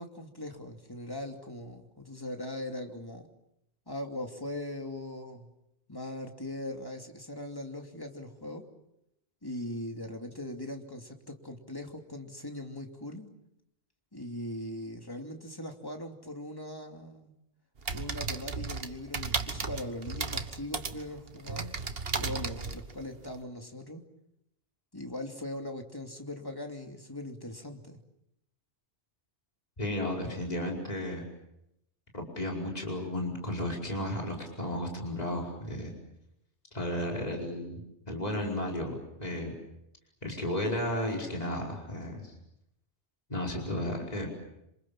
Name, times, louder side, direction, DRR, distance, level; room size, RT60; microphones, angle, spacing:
voice 1, 0.0-3.3 3.9-5.5 5.9-8.7 9.4-13.3 14.1-17.3 17.9-21.7 22.2-24.0 24.9-28.0, left 1 dB, 20° left, 3 dB, 2.7 m, -40 dB
sound 1, 17.8-23.4, right 4 dB, 60° right, 1.6 m, -35 dB
voice 2, 29.8-31.2 32.1-35.9 36.7-37.8 38.1-39.5 40.2-42.3 43.3-44.3, left 1 dB, 35° left, -1 dB, 5.2 m, -33 dB
27.5 x 27.0 x 7.3 m, 0.82 s
omnidirectional pair, 1.2 m